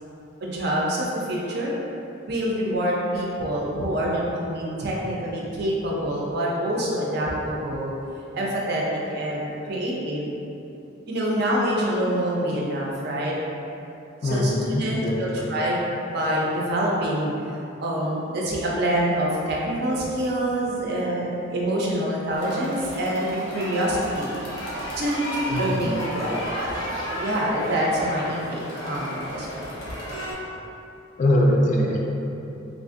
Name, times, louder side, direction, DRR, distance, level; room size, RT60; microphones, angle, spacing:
voice 1, 0.4-1.7 2.3-7.9 8.3-8.8 9.1-10.3 11.1-13.3 14.2-15.8 16.1-17.3 17.8-24.3 25.0-26.8 27.2-29.5, right 1 dB, 55° right, -4 dB, 0.5 m, -26 dB
voice 2, 14.2-15.6 25.5-26.0 31.2-32.0, left 1 dB, 40° left, -1 dB, 0.3 m, -22 dB
sound 1, 22.3-30.3, equal, 90° left, 0.7 m, -33 dB
3.3 x 2.5 x 2.5 m, 2.8 s
head